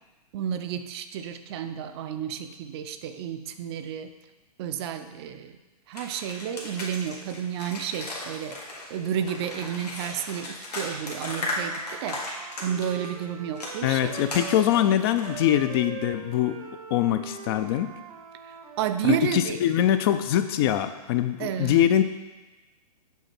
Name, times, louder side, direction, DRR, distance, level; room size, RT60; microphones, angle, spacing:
voice 1, 0.3-4.1 4.6-5.5 5.9-8.6 8.9-14.1 18.5-19.6 21.4-21.9, right 9 dB, 40° right, 9 dB, 0.5 m, -31 dB
sound 1, 5.9-13.1 13.6-15.3, left 2 dB, 90° left, 1.9 m, -36 dB
Wind instrument woodwind instrument, 11.2-14.9 15.2-19.0, right 7 dB, 70° right, 0.9 m, -42 dB
voice 2, 13.8-16.6 16.9-17.9 19.0-22.0, left 11 dB, 40° left, 10 dB, 0.4 m, -23 dB
8.2 x 3.9 x 4.3 m, 1.1 s
hypercardioid pair, 125°, 20 cm